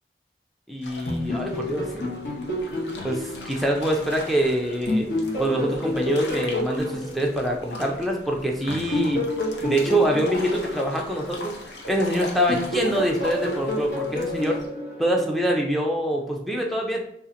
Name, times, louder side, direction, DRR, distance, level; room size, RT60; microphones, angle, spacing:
voice 1, 0.7-2.1 3.0-5.1 5.4-9.3 9.6-11.5 11.9-14.6 15.0-17.0, right 1 dB, ahead, -1 dB, 0.4 m, -25 dB
sound 1, 0.8-14.7, left 2 dB, 90° left, 0.7 m, -40 dB
sound 2, 1.1-4.4 4.9-8.1 8.7-12.0 12.5-15.7, left 1 dB, 70° left, 1.2 m, -30 dB
2.8 x 2.4 x 3.8 m, 0.77 s
head